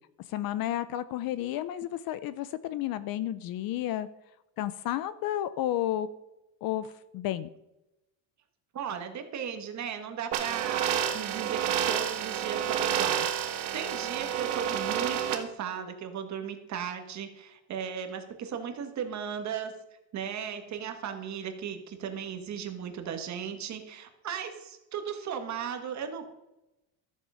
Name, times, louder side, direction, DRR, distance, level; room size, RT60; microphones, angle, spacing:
voice 1, 0.3-4.1 4.6-6.1 6.6-7.5, left 12 dB, 50° left, 15 dB, 0.5 m, -32 dB
voice 2, 8.7-11.6 11.9-19.7 20.1-26.3, right 8 dB, 35° right, 6 dB, 1.5 m, -36 dB
sound 1, 10.3-15.3, right 9 dB, 55° right, 1.6 m, -29 dB
13.5 x 7.4 x 5.6 m, 0.95 s
cardioid pair, 175°, 47 cm